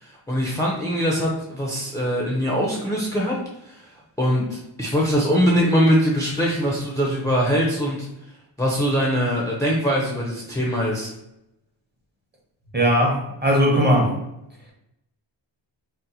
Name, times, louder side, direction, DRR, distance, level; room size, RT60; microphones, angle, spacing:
voice 1, 0.0-3.4 3.6-3.9 4.2-8.0 8.6-11.1, equal, 10° left, -4 dB, 0.4 m, -22 dB
voice 2, 12.7-14.1, equal, 25° right, -1 dB, 0.7 m, -18 dB
2.7 x 2.1 x 4.0 m, 0.88 s
wide cardioid pair, 130°, 45 cm